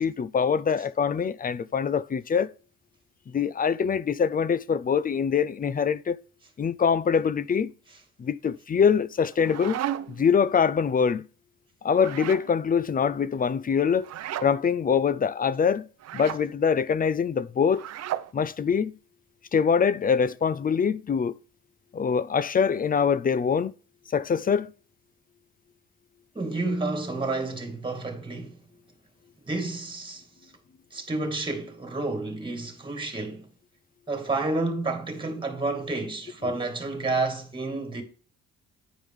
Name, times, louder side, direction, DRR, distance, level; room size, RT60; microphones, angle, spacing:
voice 1, 0.0-2.5 3.3-6.2 6.6-7.7 8.2-9.8 10.1-11.2 11.8-14.1 14.4-15.9 16.1-17.9 18.3-18.9 19.5-21.3 21.9-23.7 24.1-24.7 36.4-36.6, left 6 dB, 30° left, 0.5 m, -24 dB
sound 1, 9.2-10.3 11.9-12.5 14.0-14.5 16.0-16.4 17.7-18.3, right 11 dB, 60° right, 0.6 m, -34 dB
voice 2, 26.3-28.6 29.4-30.5 30.9-33.5 34.1-38.0, right 3 dB, 15° right, 2.1 m, -30 dB
9.1 x 5.0 x 3.6 m
cardioid pair, 90°, 30 cm